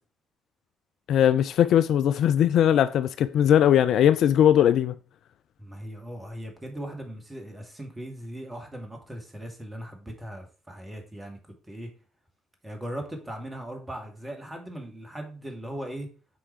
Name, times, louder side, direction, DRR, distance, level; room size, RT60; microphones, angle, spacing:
voice 1, 1.1-4.9, left 10 dB, 55° left, 0.4 m, -20 dB
voice 2, 5.6-11.4 11.7-11.9 12.6-16.1, right 1 dB, 15° right, 2.4 m, -38 dB
8.2 x 4.7 x 4.7 m
figure-of-eight pair, 45°, 0 cm